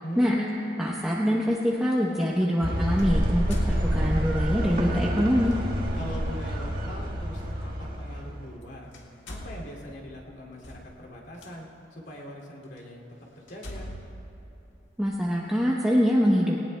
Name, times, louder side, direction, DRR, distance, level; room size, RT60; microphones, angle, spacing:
voice 1, 0.0-0.9 5.9-8.9 9.3-13.0 13.5-13.9, left 1 dB, 65° left, -3 dB, 2.5 m, -40 dB
voice 2, 0.8-5.5 15.0-16.6, equal, 5° right, -4 dB, 0.8 m, -24 dB
sound 1, 0.9-1.1 3.0-4.5 5.4-5.6 7.4-7.5 8.5-8.6 8.9-11.5 12.2-12.3 12.8-12.9 13.5-15.3, equal, 80° left, 1.6 m, -43 dB
sound 2, 2.6-8.5, equal, 50° right, 1.5 m, -28 dB
19.5 x 18.5 x 2.2 m, 3.0 s
head